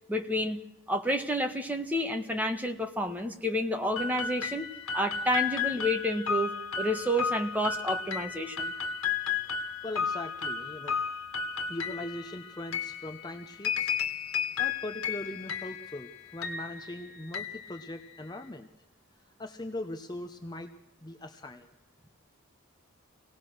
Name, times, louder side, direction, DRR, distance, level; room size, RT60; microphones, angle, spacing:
voice 1, 0.1-0.6 0.9-4.6 4.9-8.7, equal, 10° right, 5 dB, 1.5 m, -30 dB
sound 1, 4.0-18.4, left 6 dB, 80° left, 1.8 m, -34 dB
voice 2, 9.8-11.0 11.7-14.0 14.6-18.7 19.4-20.7 21.0-21.7, left 1 dB, 20° left, 5 dB, 0.9 m, -40 dB
26.0 x 18.5 x 6.4 m, 0.76 s
head